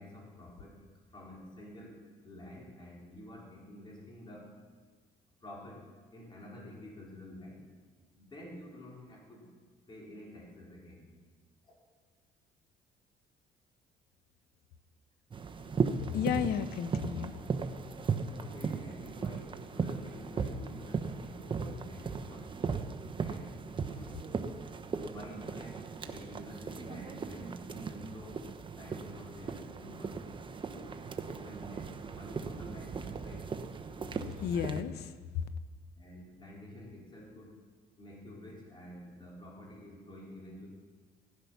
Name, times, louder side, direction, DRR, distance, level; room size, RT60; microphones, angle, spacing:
voice 1, 0.0-4.6 5.4-7.6 8.1-9.5 9.9-11.1 11.6-11.9 18.1-22.6 23.2-24.2 24.9-28.5 28.7-33.5 36.0-37.7 38.0-40.7, left 1 dB, 25° left, -3 dB, 4.5 m, -49 dB
sound 1, 15.3-34.8, right 5 dB, 30° right, 1.0 m, -37 dB
voice 2, 16.1-17.4 34.4-35.5, left 8 dB, 75° left, 13 dB, 0.9 m, -33 dB
17.0 x 11.5 x 5.9 m, 1.5 s
cardioid pair, 110°, 17 cm